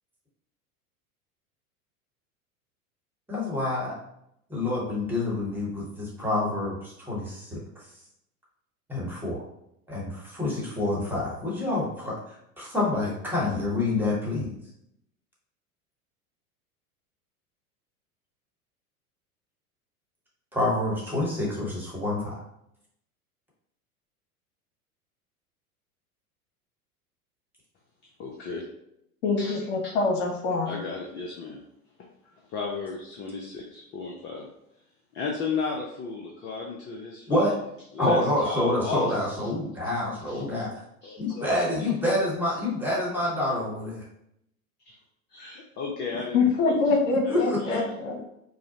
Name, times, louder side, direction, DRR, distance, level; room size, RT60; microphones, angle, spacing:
voice 1, 3.3-4.0 4.5-7.6 8.9-9.4 9.9-12.2 12.6-14.6 20.5-22.3 37.3-37.6 38.0-40.7 41.2-44.0 47.3-47.6, left 1 dB, 5° right, -5 dB, 1.4 m, -27 dB
voice 2, 28.2-28.6 29.4-29.6 30.7-31.6 32.5-34.5 35.1-37.5 37.9-39.5 40.3-40.4 41.0-41.5 44.9-45.0 45.3-46.8 47.2-47.9, left 4 dB, 25° left, 0 dB, 0.5 m, -34 dB
voice 3, 29.2-30.8 46.3-48.2, left 3 dB, 60° left, 1 dB, 0.9 m, -25 dB
4.8 x 2.1 x 2.8 m, 0.79 s
figure-of-eight pair, 85°, 44 cm